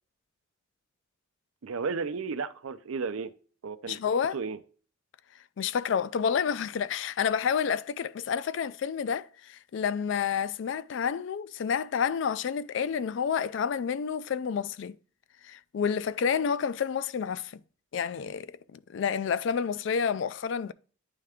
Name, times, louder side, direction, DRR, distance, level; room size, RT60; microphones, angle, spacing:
voice 1, 1.6-3.3 3.6-4.0 4.3-4.6, right 5 dB, 90° right, 0.5 m, -33 dB
voice 2, 3.9-4.4 5.6-15.0 15.4-17.6 17.9-20.7, left 7 dB, 60° left, 0.3 m, -29 dB
9.7 x 3.3 x 3.5 m
head